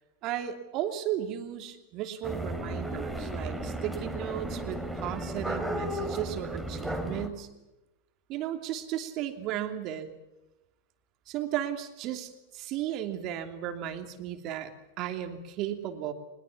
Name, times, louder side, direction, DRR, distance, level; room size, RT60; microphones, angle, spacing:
voice 1, 0.2-7.5 8.3-10.1 11.3-16.1, right 11 dB, 40° right, 6 dB, 2.9 m, -35 dB
sound 1, 2.2-7.3, right 1 dB, ahead, 2.9 m, -34 dB
22.5 x 21.5 x 7.2 m, 0.99 s
figure-of-eight pair, 95°, 0 cm